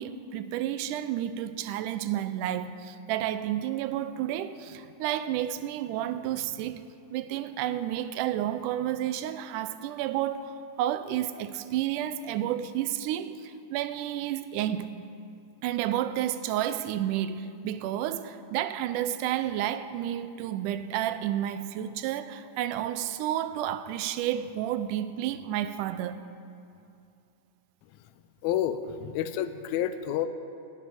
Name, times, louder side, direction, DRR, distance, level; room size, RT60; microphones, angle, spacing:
voice 1, 0.0-6.8 7.1-10.5 10.8-14.9 15.6-26.2, right 11 dB, 85° right, 12 dB, 2.1 m, -31 dB
voice 2, 28.4-30.3, left 10 dB, 80° left, 10 dB, 1.7 m, -29 dB
11.0 x 7.5 x 9.6 m, 2.6 s
omnidirectional pair, 3.6 m